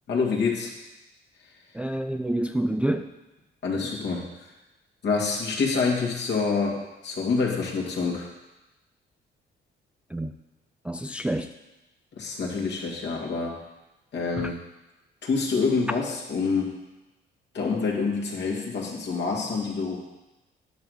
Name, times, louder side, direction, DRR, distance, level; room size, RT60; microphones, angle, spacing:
voice 1, 0.1-0.7 3.6-4.2 5.0-8.3 12.2-13.5 14.1-14.6 15.2-16.8 17.5-20.0, left 4 dB, 60° left, -2 dB, 2.1 m, -27 dB
voice 2, 1.7-3.1 10.1-10.3 10.8-11.5 14.4-14.5, right 1 dB, 5° right, 7 dB, 0.3 m, -28 dB
10.5 x 3.9 x 6.4 m, 1.0 s
cardioid pair, 90°, 20 cm